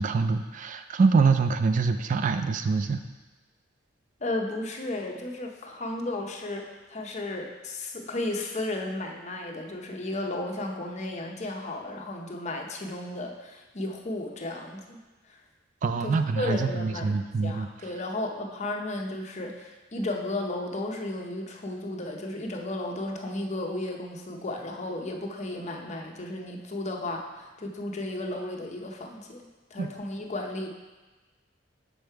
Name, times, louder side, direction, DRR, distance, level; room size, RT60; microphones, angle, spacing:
voice 1, 0.0-3.0 15.8-17.7 29.8-29.9, right 4 dB, 45° right, 9 dB, 0.3 m, -25 dB
voice 2, 4.2-15.0 15.3-15.4 16.0-17.1 17.4-30.7, left 2 dB, 40° left, 2 dB, 0.7 m, -34 dB
6.5 x 5.2 x 4.5 m, 1.2 s
head